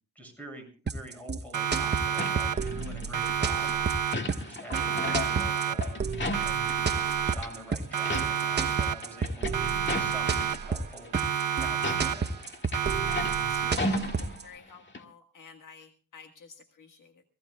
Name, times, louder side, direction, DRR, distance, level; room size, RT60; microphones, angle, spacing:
voice 1, 0.2-3.9 4.4-6.0 6.4-6.9 7.2-11.1 11.6-12.3, right 1 dB, 5° left, 4 dB, 7.3 m, -46 dB
sound 1, 0.9-14.4, right 4 dB, 30° right, 0.9 m, -32 dB
Siren, 1.5-2.9 3.1-4.5 4.7-6.1 6.3-7.7 7.9-9.3 9.5-10.9 11.1-12.5 12.7-14.1, right 9 dB, 65° right, 1.0 m, -30 dB
sound 2, 2.2-3.3 3.7-7.1 7.3-7.5 7.9-8.6 8.9-10.6 11.1-11.2 11.7-14.7 14.9-15.0, left 2 dB, 35° left, 1.9 m, -35 dB
voice 2, 13.3-17.2, left 6 dB, 65° left, 6 dB, 1.7 m, -52 dB
27.5 x 17.0 x 2.3 m, 0.37 s
cardioid pair, 115°, 33 cm